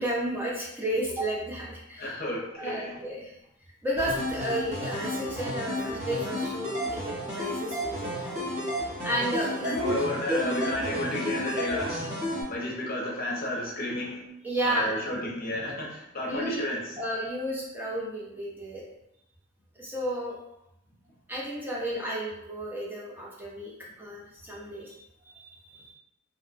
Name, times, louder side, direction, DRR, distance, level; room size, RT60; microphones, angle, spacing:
voice 1, 0.0-2.1 2.6-3.3 3.8-6.8 7.0-8.4 9.0-9.9 10.3-11.0 11.7-11.9 14.4-15.0 16.3-16.6 17.0-18.8 19.8-20.4 21.3-23.7 24.0-25.9, equal, 10° right, -5 dB, 0.5 m, -32 dB
voice 2, 2.0-3.0 9.6-12.1 12.5-14.3 14.6-17.0, left 1 dB, 50° left, -3 dB, 0.6 m, -32 dB
sound 1, 4.0-12.4, equal, 35° right, 0.9 m, -32 dB
2.8 x 2.1 x 2.5 m, 0.82 s
head